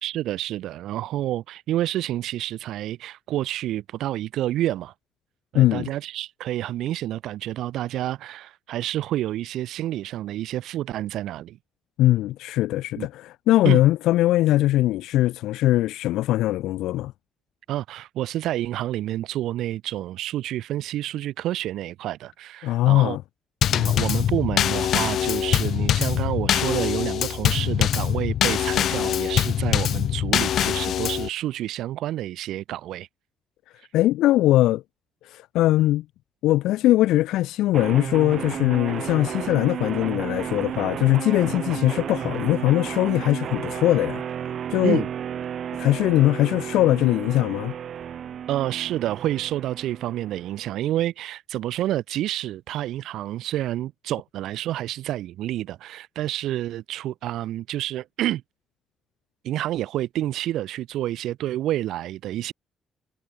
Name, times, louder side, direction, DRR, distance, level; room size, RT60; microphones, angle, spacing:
voice 1, 0.0-4.9 5.5-11.6 13.0-13.1 13.6-13.8 17.7-23.2 23.7-33.1 44.8-45.1 48.5-58.4 59.4-62.5, right 13 dB, 85° right, 3.9 m, -29 dB
voice 2, 5.5-5.9 12.0-17.1 22.6-23.2 33.9-34.8 35.2-36.0 36.4-44.2 44.7-45.0 45.8-47.7, left 15 dB, 90° left, 0.7 m, -21 dB
Drum kit / Snare drum / Bass drum, 23.6-31.3, left 10 dB, 70° left, 0.3 m, -23 dB
sound 1, 37.7-50.7, right 8 dB, 60° right, 5.4 m, -33 dB
cardioid pair, 90°, 0 cm